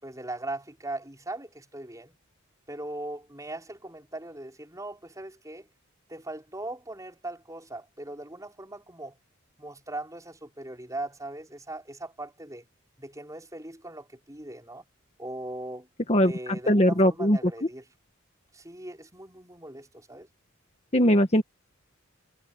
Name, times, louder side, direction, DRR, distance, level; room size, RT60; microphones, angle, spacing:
voice 1, 0.0-2.2 2.7-5.7 6.1-9.2 9.6-12.6 13.0-14.8 15.2-15.9 16.2-17.8 18.5-20.3, right 2 dB, 15° right, 5.9 m, -39 dB
voice 2, 16.7-17.4 20.9-21.4, equal, 30° left, 1.5 m, -20 dB
head